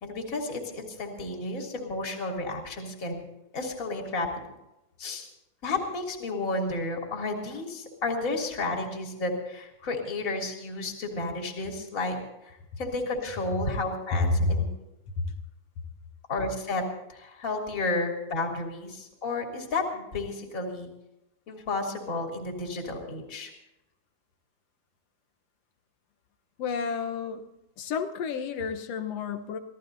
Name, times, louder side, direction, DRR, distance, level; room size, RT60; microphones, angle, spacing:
voice 1, 0.0-3.2 3.5-4.3 5.0-5.3 5.6-12.2 12.5-14.7 16.3-20.9 21.5-23.5, left 2 dB, 25° left, 1 dB, 3.0 m, -32 dB
voice 2, 14.1-14.7 15.1-15.4 26.6-27.4 27.8-29.6, left 3 dB, 70° left, 6 dB, 1.5 m, -29 dB
26.0 x 17.5 x 2.7 m, 0.88 s
omnidirectional pair, 4.3 m